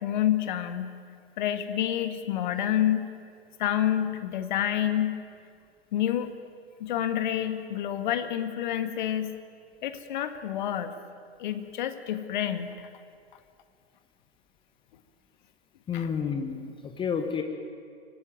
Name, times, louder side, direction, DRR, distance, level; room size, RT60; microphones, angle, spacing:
voice 1, 0.0-1.0 1.4-3.0 3.6-5.2 5.9-6.3 6.8-9.3 9.8-10.9 11.4-12.9 15.9-16.1, left 11 dB, 45° left, 9 dB, 1.9 m, -28 dB
voice 2, 15.9-17.4, left 6 dB, 15° left, 6 dB, 1.4 m, -30 dB
25.0 x 18.0 x 9.2 m, 2.2 s
figure-of-eight pair, 110°, 33 cm